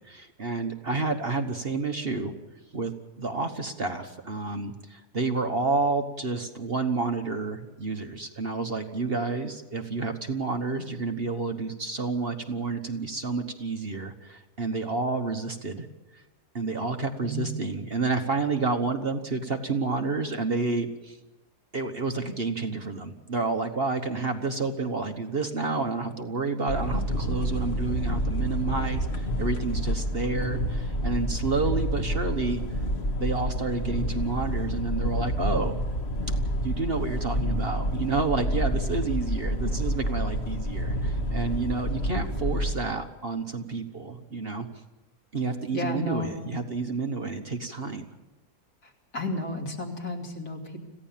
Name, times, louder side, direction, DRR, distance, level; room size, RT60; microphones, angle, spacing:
voice 1, 0.0-2.3 2.7-15.9 16.1-16.2 16.5-21.2 21.7-32.6 33.2-35.8 36.6-44.7 45.3-48.0, right 3 dB, 40° right, 6 dB, 1.3 m, -30 dB
voice 2, 17.2-17.5 45.7-46.4 48.8-50.8, left 2 dB, 65° left, 1 dB, 3.4 m, -33 dB
sound 1, 26.7-42.7, equal, 40° left, 1.7 m, -28 dB
26.5 x 16.0 x 7.4 m, 1.1 s
omnidirectional pair, 1.7 m